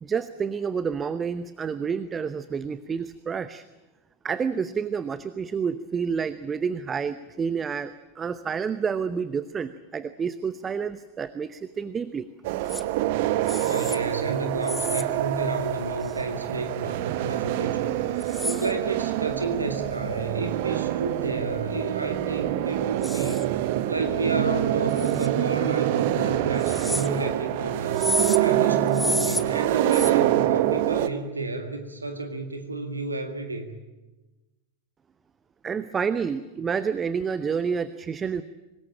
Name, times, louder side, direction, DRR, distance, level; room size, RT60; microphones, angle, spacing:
voice 1, 0.0-3.6 4.2-12.3 35.6-38.4, right 6 dB, 20° right, 14 dB, 0.8 m, -29 dB
sound 1, 12.4-31.1, right 14 dB, 50° right, 1.2 m, -26 dB
sound 2, 12.7-12.8 13.5-14.0 14.6-15.0 16.0-16.2 18.2-18.7 23.0-23.5 24.9-25.3 26.6-27.1 27.9-28.4 28.9-29.4 29.9-30.1, left 2 dB, 5° left, 1.1 m, -30 dB
voice 2, 13.6-33.7, right 2 dB, 80° right, 7 dB, 1.9 m, -31 dB
24.5 x 20.0 x 8.9 m, 1.1 s
figure-of-eight pair, 90°, 0 cm